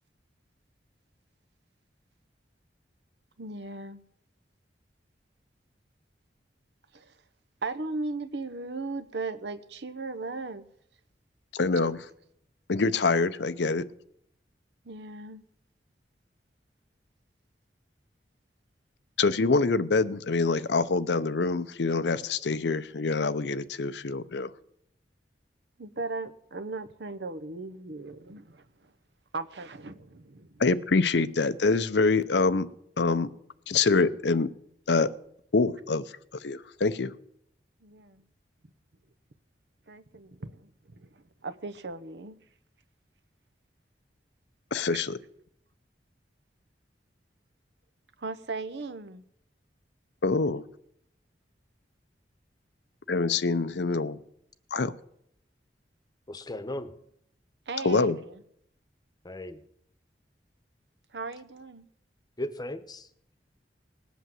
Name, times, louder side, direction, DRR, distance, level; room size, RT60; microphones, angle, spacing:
voice 1, 3.4-4.0 6.9-7.1 7.6-10.6 14.8-15.4 25.8-28.9 29.3-30.6 37.8-38.2 39.9-42.4 48.2-49.2 57.7-58.4 61.1-61.9, right 3 dB, 70° right, 11 dB, 0.9 m, -37 dB
voice 2, 11.5-12.0 12.7-13.9 19.2-24.5 30.6-32.7 33.0-33.3 33.7-34.5 34.9-35.1 35.5-36.0 36.4-37.1 44.7-45.2 50.2-50.6 53.1-54.2 54.7-54.9 57.8-58.2, left 3 dB, 70° left, 13 dB, 0.7 m, -25 dB
voice 3, 56.3-56.9 59.2-59.6 62.4-63.1, left 1 dB, 25° left, 11 dB, 1.0 m, -36 dB
19.0 x 8.3 x 7.6 m, 0.74 s
head